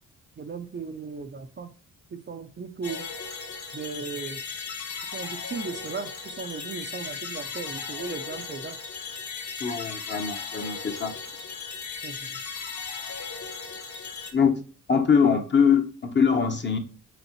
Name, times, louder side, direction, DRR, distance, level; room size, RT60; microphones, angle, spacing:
voice 1, 0.4-1.7 2.1-3.1 3.7-4.4 5.1-8.8 12.0-12.2, right 5 dB, 30° right, 7 dB, 0.6 m, -36 dB
sound 1, 2.8-14.3, left 5 dB, 50° left, 2.1 m, -36 dB
voice 2, 9.6-11.1 14.3-14.6 14.9-16.8, left 6 dB, 30° left, 5 dB, 1.1 m, -22 dB
8.0 x 4.4 x 3.1 m, 0.37 s
cardioid pair, 110°, 34 cm